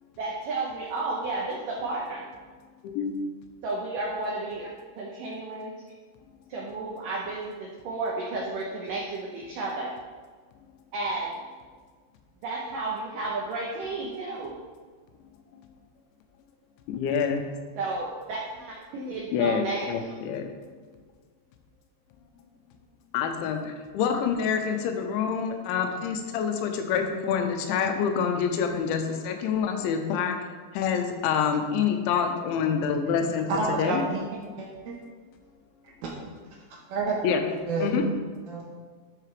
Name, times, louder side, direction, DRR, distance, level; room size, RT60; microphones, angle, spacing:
voice 1, 0.2-2.3 3.6-4.7 5.0-5.7 6.5-9.9 10.9-11.4 12.4-14.5 17.8-20.0, right 3 dB, 90° right, -3 dB, 1.9 m, -32 dB
voice 2, 16.9-17.4 19.3-20.5 23.1-30.5 30.7-34.0 37.2-37.4 37.8-38.0, left 7 dB, 85° left, 5 dB, 3.1 m, -27 dB
voice 3, 33.5-34.2 34.6-34.9 36.0-36.1 36.9-37.2 37.7-37.9 38.5-38.6, right 4 dB, 70° right, -2 dB, 2.6 m, -28 dB
12.5 x 5.7 x 3.4 m, 1.5 s
omnidirectional pair, 5.3 m